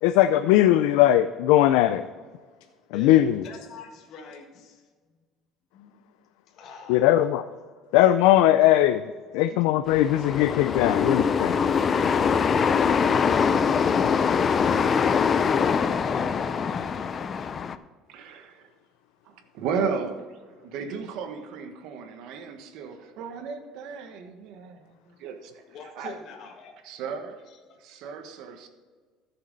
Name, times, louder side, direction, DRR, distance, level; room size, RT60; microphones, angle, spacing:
voice 1, 0.0-2.1 2.9-3.4 6.9-7.4 7.9-9.0 9.3-11.6, left 13 dB, 90° left, 0.4 m, -19 dB
voice 2, 2.9-4.8 5.7-6.0 6.5-7.1 9.4-9.6 12.1-12.5 14.1-17.6 25.7-26.7 27.5-27.6, left 5 dB, 50° left, 1.5 m, -42 dB
sound 1, 9.9-17.8, left 6 dB, 30° left, 0.4 m, -23 dB
voice 3, 18.1-18.7 19.2-25.6 25.9-26.2 26.8-27.4 27.8-28.7, right 5 dB, 65° right, 1.3 m, -35 dB
14.0 x 6.8 x 4.0 m
cardioid pair, 150°, 0 cm